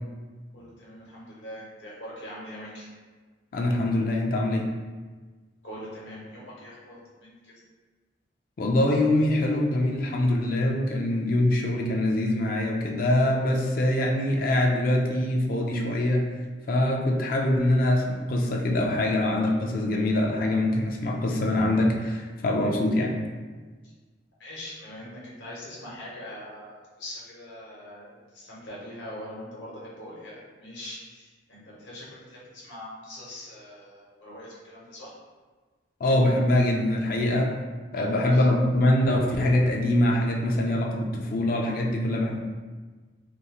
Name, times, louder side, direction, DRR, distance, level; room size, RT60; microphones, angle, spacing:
voice 1, 0.5-2.9 5.6-7.5 24.4-35.1 38.1-38.4, left 1 dB, 85° left, -6 dB, 1.0 m, -42 dB
voice 2, 3.5-4.7 8.6-16.3 16.7-23.2 36.0-37.5 37.9-42.4, left 1 dB, 50° left, 1 dB, 0.3 m, -24 dB
2.6 x 2.3 x 2.9 m, 1.4 s
head